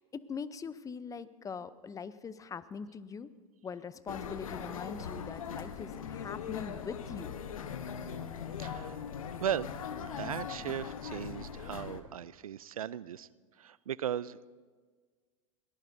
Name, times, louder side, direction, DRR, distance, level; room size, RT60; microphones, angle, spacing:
voice 1, 0.0-3.3 3.6-7.4, left 6 dB, 20° left, 15 dB, 0.7 m, -42 dB
sound 1, 4.1-12.0, left 7 dB, 80° left, 1.1 m, -40 dB
voice 2, 8.6-9.0 9.4-9.7 10.0-13.3 13.6-14.5, right 10 dB, 85° right, 20 dB, 0.4 m, -37 dB
22.0 x 18.5 x 2.7 m, 1.5 s
hypercardioid pair, 90°, 18 cm